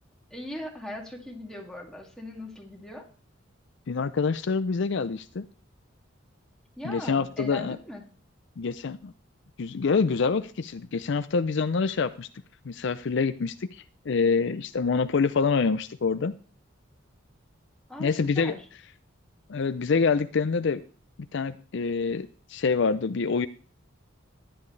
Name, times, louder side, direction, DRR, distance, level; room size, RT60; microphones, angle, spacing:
voice 1, 0.3-3.0 6.8-8.0 17.9-18.6, left 1 dB, 5° left, -1 dB, 2.3 m, -39 dB
voice 2, 3.9-5.4 6.8-7.8 8.6-9.1 9.6-12.3 12.7-16.3 18.0-18.6 19.5-20.8 21.3-23.5, left 5 dB, 65° left, 12 dB, 0.5 m, -26 dB
14.5 x 10.5 x 3.2 m, 0.38 s
head